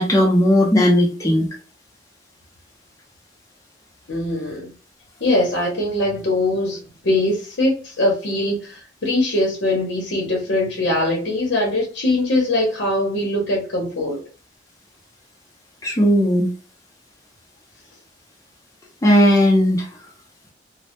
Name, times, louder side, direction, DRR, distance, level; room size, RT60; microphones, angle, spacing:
voice 1, 0.0-1.5 15.8-16.5 19.0-19.9, equal, 20° left, -1 dB, 0.5 m, -16 dB
voice 2, 4.1-4.7 5.2-6.8 7.0-14.2, left 1 dB, 85° left, -1 dB, 0.8 m, -21 dB
2.1 x 2.1 x 2.8 m, 0.35 s
head